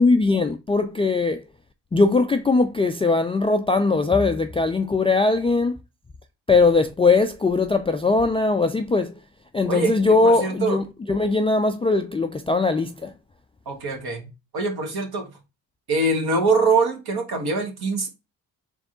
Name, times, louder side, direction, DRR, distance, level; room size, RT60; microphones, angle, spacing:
voice 1, 0.0-1.4 1.9-5.7 6.5-9.1 9.5-13.1, left 3 dB, 15° left, 0.3 m, -20 dB
voice 2, 9.7-10.8 13.6-15.3 15.9-18.1, right 3 dB, 50° right, 1.6 m, -24 dB
3.5 x 3.4 x 3.7 m
hypercardioid pair, 45°, 46 cm